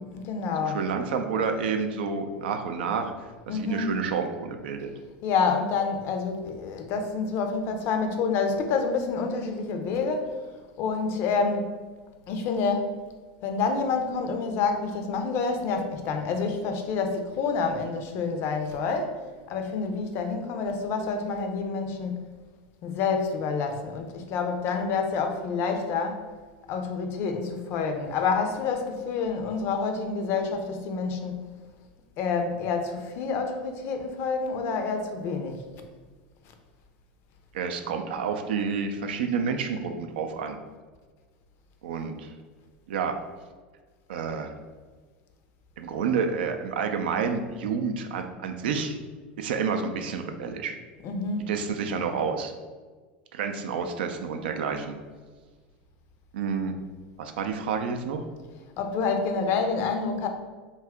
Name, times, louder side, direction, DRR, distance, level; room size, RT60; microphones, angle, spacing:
voice 1, 0.0-0.9 3.5-4.0 5.2-10.4 10.8-11.7 12.3-13.0 13.4-19.2 19.5-22.3 22.8-26.2 26.7-31.5 32.2-35.6 51.0-51.5 58.8-60.3, left 5 dB, 50° left, 5 dB, 0.5 m, -28 dB
voice 2, 0.6-3.1 3.5-4.9 37.5-40.6 41.8-42.3 42.9-43.2 44.1-44.5 45.8-49.0 49.4-50.8 51.5-52.5 53.3-55.0 56.3-56.7 57.2-58.2, right 5 dB, 75° right, 5 dB, 0.4 m, -29 dB
2.7 x 2.3 x 3.4 m, 1.4 s
hypercardioid pair, 100°, 5 cm